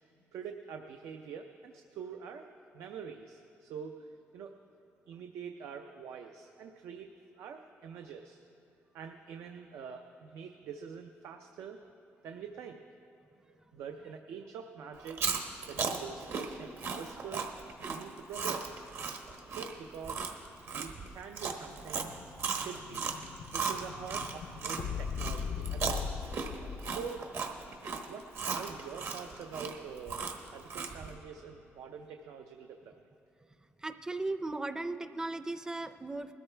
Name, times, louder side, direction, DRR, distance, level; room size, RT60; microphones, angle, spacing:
voice 1, 0.3-2.5 2.7-4.5 5.1-8.5 8.9-11.8 12.2-12.8 13.5-15.2 15.7-17.5 17.8-18.8 19.5-20.3 20.7-22.1 22.5-23.1 23.5-26.3 26.8-27.3 28.1-30.3 30.5-33.1, right 6 dB, 90° right, 5 dB, 0.6 m, -45 dB
Chewing mastication, 15.0-24.8 25.2-31.1, right 5 dB, 65° right, 1.2 m, -36 dB
Explosion, 21.1-27.1, left 7 dB, 70° left, 0.5 m, -40 dB
voice 2, 33.8-36.3, right 2 dB, 15° right, 11 dB, 0.5 m, -37 dB
20.5 x 13.0 x 3.3 m, 2.9 s
cardioid pair, 120°, 5 cm